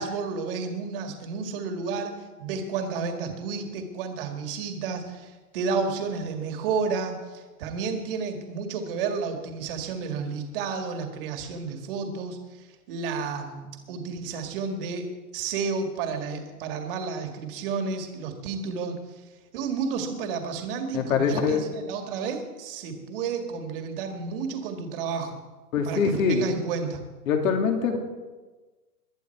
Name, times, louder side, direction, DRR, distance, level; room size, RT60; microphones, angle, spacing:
voice 1, 0.0-19.1 19.5-25.4 25.8-27.0, right 5 dB, 35° right, 5 dB, 2.1 m, -31 dB
voice 2, 20.9-21.6 25.7-26.4 27.3-28.0, left 6 dB, 55° left, 3 dB, 2.8 m, -23 dB
20.0 x 11.5 x 4.7 m, 1.3 s
hypercardioid pair, 160°, 46 cm